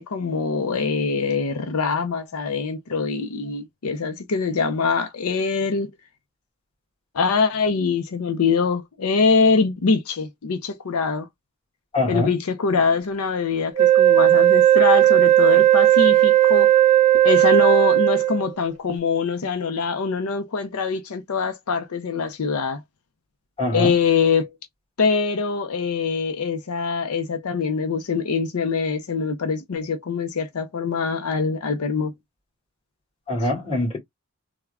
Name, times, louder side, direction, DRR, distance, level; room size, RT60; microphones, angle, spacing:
voice 1, 0.0-5.9 7.1-11.3 12.1-16.7 17.2-22.8 23.7-24.5 25.0-32.1, left 5 dB, 80° left, 0.6 m, -23 dB
voice 2, 11.9-12.3 23.6-24.0 33.3-34.0, left 2 dB, 25° left, 2.1 m, -23 dB
Wind instrument woodwind instrument, 13.8-18.5, right 12 dB, 30° right, 0.6 m, -15 dB
3.5 x 2.1 x 3.4 m
head